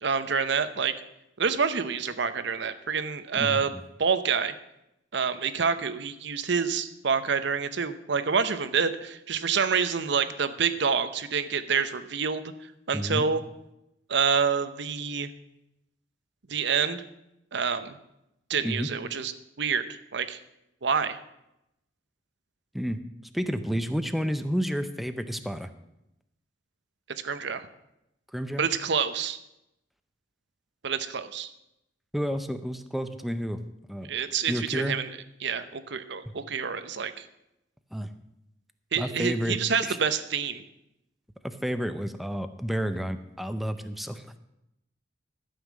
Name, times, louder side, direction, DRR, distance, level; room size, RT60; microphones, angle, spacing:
voice 1, 0.0-0.9 1.4-3.7 4.0-4.5 5.1-12.4 12.9-13.4 14.1-15.3 16.5-17.0 17.5-18.0 18.5-19.3 19.6-19.9 20.1-20.4 20.8-21.2 27.2-27.6 28.6-29.4 30.8-31.5 34.1-35.1 35.4-37.3 38.9-40.6, right 6 dB, 65° right, 12 dB, 0.8 m, -27 dB
voice 2, 12.9-13.2 18.6-18.9 22.7-23.0 23.3-25.7 28.3-28.7 32.1-33.6 33.9-34.1 34.5-35.0 37.9-38.1 39.0-40.0 41.4-44.4, equal, ahead, 9 dB, 0.6 m, -30 dB
12.5 x 5.7 x 7.3 m, 0.86 s
head